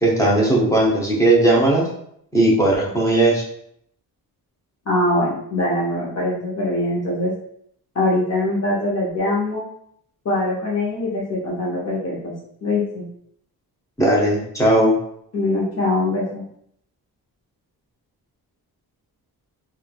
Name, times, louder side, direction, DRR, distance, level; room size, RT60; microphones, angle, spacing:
voice 1, 0.0-1.9 2.3-3.4 14.0-14.9, right 1 dB, 10° left, -4 dB, 0.7 m, -17 dB
voice 2, 4.9-7.3 7.9-9.6 10.2-12.3 12.6-13.1 15.3-16.4, left 1 dB, 40° left, -6 dB, 0.7 m, -22 dB
3.1 x 2.3 x 2.3 m, 0.69 s
wide cardioid pair, 135°, 37 cm